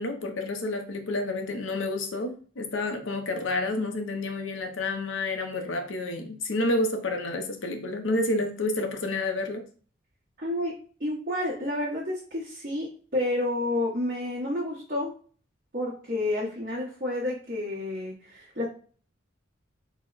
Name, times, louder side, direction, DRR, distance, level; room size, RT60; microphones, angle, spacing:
voice 1, 0.0-9.6, left 2 dB, 75° left, 5 dB, 0.6 m, -29 dB
voice 2, 10.4-10.7 11.0-15.1 15.7-18.6, left 1 dB, 45° right, -8 dB, 1.1 m, -30 dB
3.9 x 2.1 x 3.9 m, 0.43 s
head